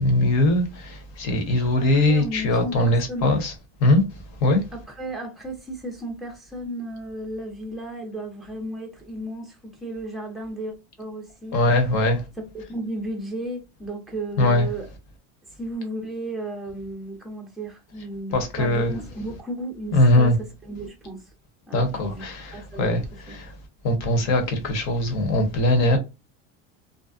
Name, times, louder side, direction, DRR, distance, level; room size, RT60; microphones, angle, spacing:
voice 1, 0.0-3.5 3.8-4.6 11.5-12.2 14.4-14.7 18.3-18.9 19.9-20.4 21.7-23.6 23.8-26.0, left 1 dB, 50° left, 0.9 m, -21 dB
voice 2, 1.9-3.3 4.7-11.6 12.4-14.9 15.5-20.3 20.6-21.3 21.7-22.2 22.5-22.9 23.3-23.4, right 1 dB, ahead, 0.5 m, -34 dB
2.5 x 2.1 x 2.4 m
cardioid pair, 150°, 36 cm